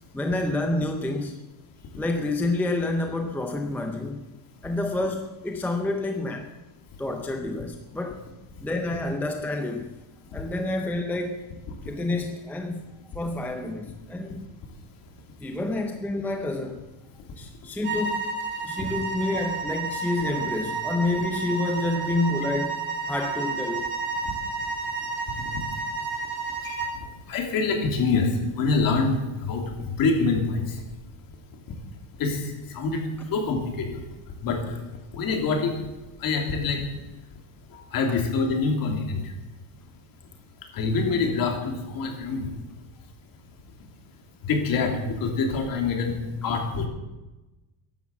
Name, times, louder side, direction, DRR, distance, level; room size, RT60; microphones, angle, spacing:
voice 1, 0.0-1.4 2.0-4.3 4.6-6.5 7.0-8.2 8.6-9.9 10.3-11.5 11.8-14.5 15.4-16.8 17.4-18.3 18.6-23.9, left 2 dB, 5° left, 4 dB, 0.6 m, -28 dB
sound 1, 17.8-27.0, right 4 dB, 25° right, 3.2 m, -31 dB
voice 2, 27.3-28.3 28.6-29.2 29.5-29.6 30.0-30.6 32.2-32.4 32.7-33.0 33.3-34.0 34.4-34.6 35.1-35.8 36.2-36.8 37.9-39.2 40.7-42.5 44.4-46.8, left 4 dB, 45° left, 3 dB, 3.0 m, -25 dB
14.5 x 11.0 x 7.1 m, 1.1 s
cardioid pair, 170°, 49 cm